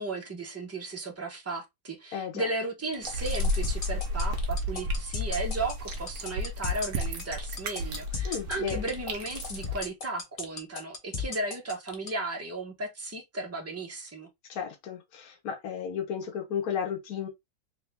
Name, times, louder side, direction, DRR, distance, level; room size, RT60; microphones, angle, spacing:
voice 1, 0.0-14.3, right 2 dB, 15° right, 0.6 m, -35 dB
voice 2, 2.1-2.5 8.2-8.8 14.5-17.3, left 8 dB, 70° left, 1.4 m, -33 dB
sound 1, 2.9-12.1, left 5 dB, 35° left, 0.6 m, -35 dB
sound 2, 3.0-9.8, equal, 70° right, 1.3 m, -33 dB
3.6 x 2.8 x 3.4 m
omnidirectional pair, 1.7 m